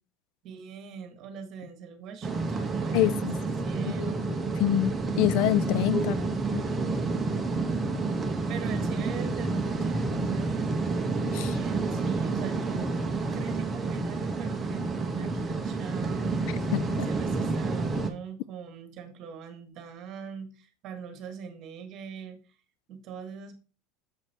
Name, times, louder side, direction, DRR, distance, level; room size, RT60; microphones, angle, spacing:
voice 1, 0.4-3.3 3.6-4.3 6.0-6.4 8.5-10.7 11.5-13.0 13.3-16.7 17.0-22.4 22.9-23.6, right 7 dB, 35° right, 1.4 m, -42 dB
sound 1, 2.2-18.1, right 3 dB, 10° right, 0.8 m, -29 dB
voice 2, 2.9-3.3 3.9-6.1 6.5-6.6 11.3-11.6 16.7-17.1, left 15 dB, 50° left, 0.3 m, -27 dB
7.3 x 4.9 x 4.4 m
supercardioid pair, 170°, 0 cm